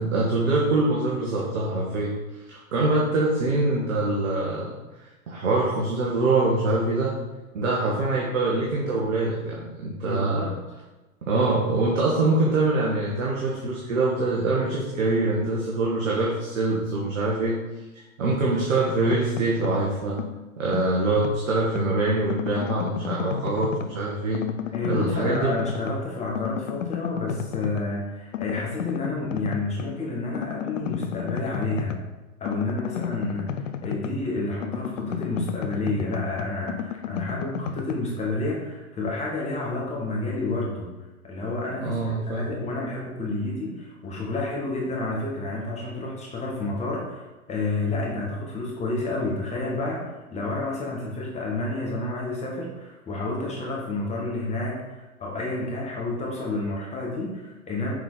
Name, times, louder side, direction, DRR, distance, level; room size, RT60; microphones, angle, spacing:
voice 1, 0.0-2.1 2.5-4.7 5.3-7.1 7.5-10.5 11.2-17.6 17.9-20.2 20.6-24.4 24.9-25.5 41.8-42.4, right 2 dB, 60° right, -4 dB, 1.6 m, -24 dB
voice 2, 10.0-10.6 24.7-32.0 32.4-40.9 41.2-54.8 55.2-57.9, left 2 dB, 15° left, -3 dB, 1.5 m, -30 dB
sound 1, 18.9-19.9 20.2-21.9 22.3-24.0 24.3-26.1 26.3-27.9 28.3-30.0 30.3-34.3 34.6-37.9, left 9 dB, 60° left, 0.6 m, -33 dB
6.6 x 4.3 x 4.0 m, 1.1 s
figure-of-eight pair, 110°, 43 cm